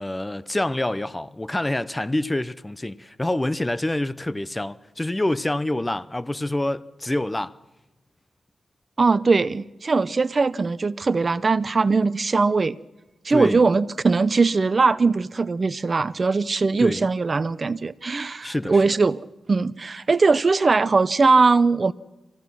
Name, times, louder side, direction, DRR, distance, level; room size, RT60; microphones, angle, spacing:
voice 1, 0.0-7.6 13.3-13.6 16.8-17.0 18.4-18.8, left 1 dB, 15° left, 0.8 m, -26 dB
voice 2, 9.0-12.8 13.2-21.9, right 4 dB, 40° right, 0.6 m, -20 dB
26.5 x 16.5 x 6.1 m
cardioid pair, 80°, 0 cm